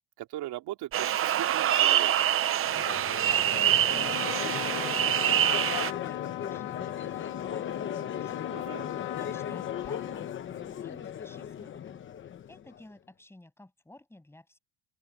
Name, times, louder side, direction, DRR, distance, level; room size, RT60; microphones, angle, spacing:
voice 1, 0.2-2.1 8.5-8.9, right 15 dB, 60° right, 3.1 m, -39 dB
sound 1, 0.9-5.9, right 11 dB, 30° right, 0.7 m, -25 dB
Crowd, 2.6-12.8, left 9 dB, 25° left, 0.8 m, -37 dB
Trumpet, 3.9-10.7, left 19 dB, 75° left, 1.2 m, -39 dB
voice 2, 3.9-12.1 12.5-14.6, left 1 dB, 5° left, 7.7 m, -52 dB
open air
cardioid pair, 175°, 44 cm